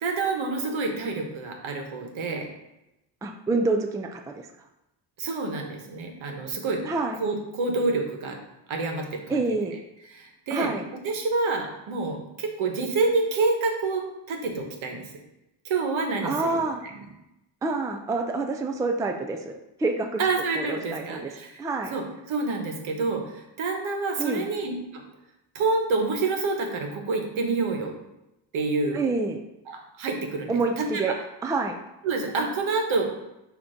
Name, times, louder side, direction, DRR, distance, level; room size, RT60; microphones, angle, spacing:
voice 1, 0.0-2.5 5.2-6.8 7.2-8.4 8.7-9.6 10.1-10.7 11.0-15.1 15.6-16.6 16.9-17.0 20.2-21.6 21.9-25.0 25.5-27.9 28.5-29.0 29.7-30.5 30.8-31.2 32.0-33.0, right 3 dB, 70° right, 3 dB, 1.3 m, -28 dB
voice 2, 3.2-4.5 6.9-7.2 9.3-9.8 10.5-10.9 16.2-16.8 17.6-20.2 20.6-21.3 21.6-21.9 24.2-24.5 28.9-29.4 30.5-31.1 31.4-31.8, right 3 dB, 10° right, 3 dB, 0.3 m, -27 dB
6.6 x 2.9 x 5.0 m, 0.91 s
cardioid pair, 110°, 48 cm